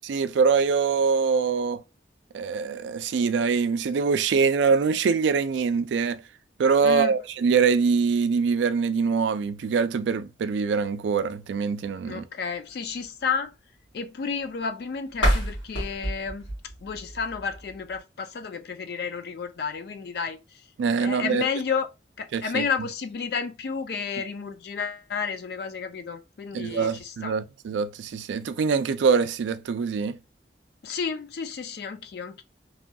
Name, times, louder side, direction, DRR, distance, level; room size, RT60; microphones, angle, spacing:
voice 1, 0.0-1.8 2.3-6.2 6.6-12.2 20.8-21.4 22.3-22.6 26.5-30.2, right 5 dB, 75° right, 0.3 m, -24 dB
voice 2, 6.8-7.2 12.0-13.5 13.9-16.5 16.8-20.7 21.0-21.9 22.2-27.3 30.8-32.4, left 6 dB, 55° left, 0.3 m, -31 dB
sound 1, 15.1-18.0, equal, 90° left, 1.3 m, -28 dB
3.0 x 2.2 x 2.6 m
head